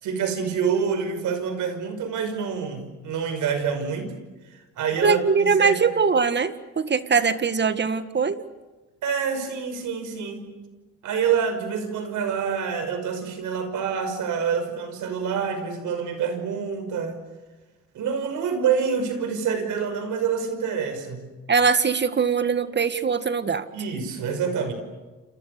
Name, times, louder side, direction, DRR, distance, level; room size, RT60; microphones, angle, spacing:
voice 1, 0.0-4.1 4.8-5.7 9.0-10.4 11.0-17.2 17.9-21.3 23.7-24.7, right 6 dB, 80° right, 8 dB, 5.8 m, -27 dB
voice 2, 5.0-8.4 21.5-23.7, right 5 dB, 35° right, 11 dB, 1.9 m, -22 dB
30.0 x 27.5 x 6.8 m, 1.2 s
cardioid pair, 90°, 30 cm